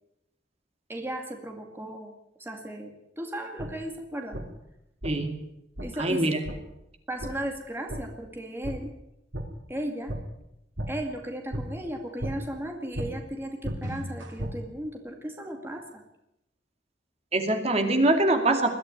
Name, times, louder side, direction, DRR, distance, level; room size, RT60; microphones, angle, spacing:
voice 1, 0.9-2.1 2.4-4.4 5.8-6.3 7.1-8.9 9.7-10.1 10.9-16.0, right 1 dB, 15° right, 2 dB, 2.3 m, -36 dB
sound 1, 3.6-3.7 4.3-4.4 5.0-5.1 5.8-5.9 6.4-6.6 7.2-7.3 7.9-8.0 8.6-8.8 9.3-9.4 10.1-10.2 10.8-10.9 11.5-11.6 12.2-12.3 12.9-13.1 13.6-14.5, equal, 85° right, 4.5 m, -33 dB
voice 2, 5.0-5.3 6.0-6.4 17.3-18.8, right 2 dB, 35° right, 5 dB, 2.4 m, -23 dB
21.0 x 13.5 x 9.9 m, 0.86 s
head